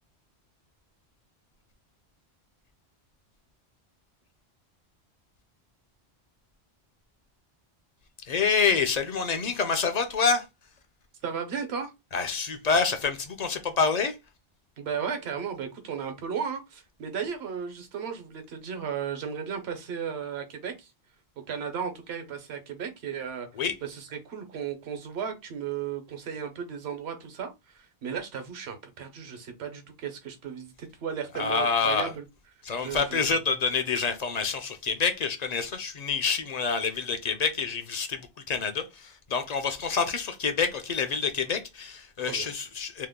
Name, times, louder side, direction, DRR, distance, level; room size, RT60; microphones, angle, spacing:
voice 1, 8.3-10.5 12.1-14.2 23.6-23.7 31.4-32.1 32.6-43.1, left 5 dB, 50° left, 0.5 m, -27 dB
voice 2, 11.2-11.9 14.8-20.9 21.5-23.5 23.8-27.5 27.8-32.2 32.8-33.4 42.3-42.5, right 7 dB, 80° right, 1.0 m, -35 dB
2.8 x 2.2 x 3.5 m
omnidirectional pair, 1.1 m